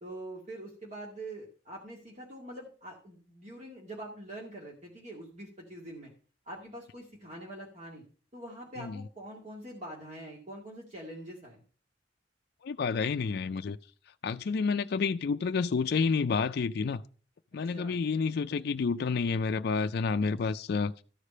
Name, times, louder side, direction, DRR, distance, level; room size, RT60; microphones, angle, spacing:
voice 1, 0.0-6.1 6.5-8.0 8.3-11.6 17.7-18.0, right 1 dB, 40° right, 2.1 m, -44 dB
voice 2, 12.6-13.8 14.2-17.0 17.5-20.9, left 5 dB, 60° left, 0.4 m, -29 dB
13.5 x 5.0 x 5.4 m
head